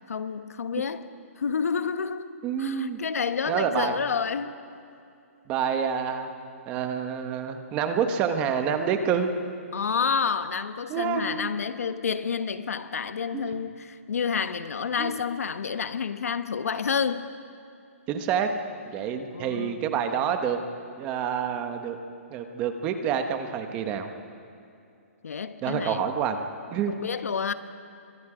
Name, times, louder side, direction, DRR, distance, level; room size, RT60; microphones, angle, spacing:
voice 1, 0.1-1.1 1.4-2.3 2.6-4.6 9.7-17.2 19.3-19.8 25.2-26.0 27.0-27.5, left 6 dB, 85° left, 1.3 m, -29 dB
voice 2, 2.4-3.0 3.5-3.9 5.5-6.3 6.7-9.3 10.9-11.5 13.3-13.5 15.0-15.1 18.1-18.5 18.9-20.6 21.0-22.0 22.3-24.1 25.6-26.4 26.7-26.9, right 7 dB, 15° right, 1.1 m, -27 dB
29.5 x 24.5 x 5.0 m
hypercardioid pair, 175°, 8 cm